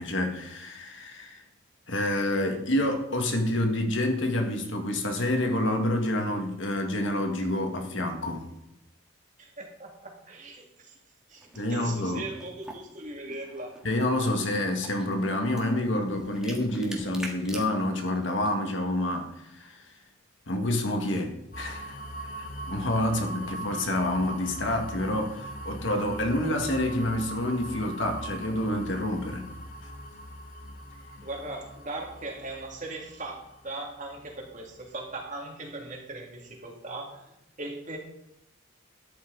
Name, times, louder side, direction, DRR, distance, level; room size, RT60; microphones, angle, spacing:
voice 1, 0.0-1.4 1.9-8.5 11.6-12.2 13.8-19.9 20.5-22.0 22.4-29.5, left 1 dB, 70° left, 1.9 m, -28 dB
voice 2, 9.4-11.0 11.3-13.7 31.2-38.0, right 2 dB, 40° right, 2.4 m, -39 dB
sound 1, 11.3-18.5, right 1 dB, 5° right, 1.6 m, -46 dB
sound 2, 21.5-35.3, right 1 dB, 40° left, 1.1 m, -41 dB
13.0 x 10.0 x 4.0 m
head